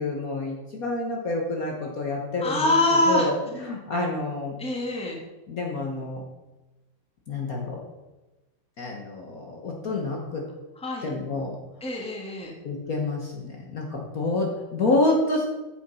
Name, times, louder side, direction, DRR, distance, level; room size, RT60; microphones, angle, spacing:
voice 1, 0.0-2.7 3.1-4.5 5.5-6.2 7.3-7.8 8.8-10.4 11.0-11.5 12.6-15.4, left 2 dB, 50° left, 0 dB, 1.5 m, -28 dB
voice 2, 2.4-3.3 4.6-5.2 10.8-11.1 11.8-12.5, left 1 dB, 5° left, 0 dB, 1.4 m, -24 dB
8.6 x 6.7 x 5.5 m, 1.1 s
omnidirectional pair, 2.2 m